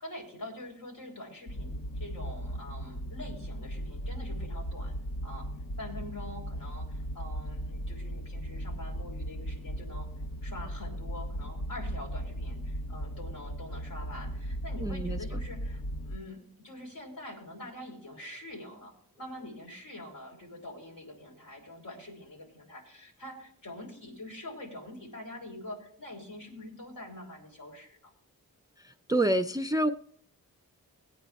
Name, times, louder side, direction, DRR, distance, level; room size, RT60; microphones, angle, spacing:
voice 1, 0.0-4.9 5.2-5.5 5.8-10.1 10.4-15.8 16.1-28.1, left 1 dB, 65° left, 0 dB, 4.1 m, -45 dB
sound 1, 1.5-16.2, equal, 45° left, 0.8 m, -37 dB
voice 2, 14.8-15.2 28.8-29.9, right 1 dB, 10° right, 7 dB, 0.4 m, -27 dB
21.0 x 9.0 x 2.4 m, 0.64 s
cardioid pair, 60°, 37 cm